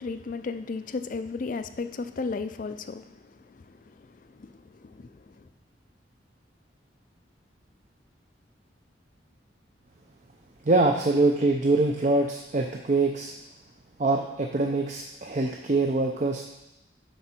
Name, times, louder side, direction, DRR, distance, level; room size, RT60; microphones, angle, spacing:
voice 1, 0.0-5.5, left 4 dB, 45° left, 10 dB, 0.4 m, -35 dB
voice 2, 10.7-13.3 14.0-16.4, right 2 dB, 40° right, 2 dB, 0.5 m, -24 dB
7.8 x 5.5 x 4.4 m, 0.90 s
head